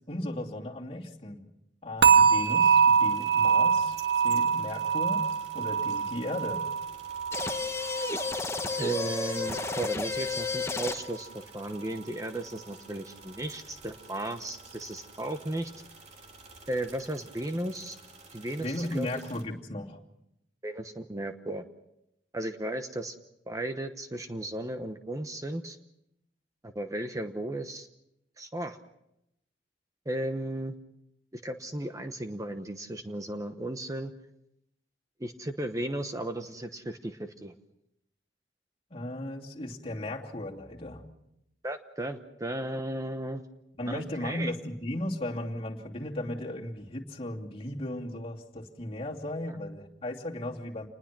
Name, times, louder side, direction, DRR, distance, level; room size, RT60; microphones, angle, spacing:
voice 1, 0.1-1.4 1.8-5.3 5.5-6.7 18.6-20.0 38.9-41.1 43.8-50.9, left 1 dB, 35° left, -1 dB, 2.7 m, -36 dB
sound 1, 2.0-9.1 9.4-9.8 10.3-10.4, right 6 dB, 80° right, 1.6 m, -25 dB
sound 2, 2.1-19.4, right 3 dB, 40° right, 3.4 m, -51 dB
sound 3, 7.3-11.2, left 4 dB, 15° left, 1.1 m, -32 dB
voice 2, 8.8-15.7 16.7-18.0 18.3-19.1 20.6-21.6 22.3-23.1 23.5-25.8 26.6-27.9 28.4-28.8 30.0-30.7 31.3-34.1 35.2-37.5 41.6-43.4 43.9-44.5, right 1 dB, 20° right, 7 dB, 1.0 m, -35 dB
28.0 x 20.5 x 6.1 m, 0.83 s
head